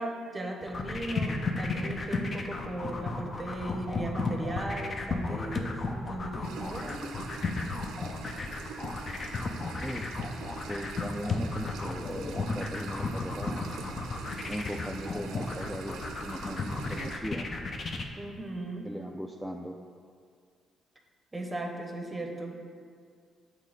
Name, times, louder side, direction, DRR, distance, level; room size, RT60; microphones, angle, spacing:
voice 1, 0.0-7.1 18.2-18.9 21.3-22.5, right 1 dB, 20° right, 3 dB, 0.8 m, -37 dB
sound 1, 0.6-18.0, left 3 dB, 40° left, 0.6 m, -33 dB
sound 2, 6.4-17.2, right 5 dB, 90° right, 0.5 m, -44 dB
voice 2, 9.8-10.1 10.7-14.0 14.5-17.5 18.8-19.8, equal, ahead, 2 dB, 0.3 m, -39 dB
7.2 x 3.2 x 5.1 m, 2.1 s
cardioid pair, 95°, 0 cm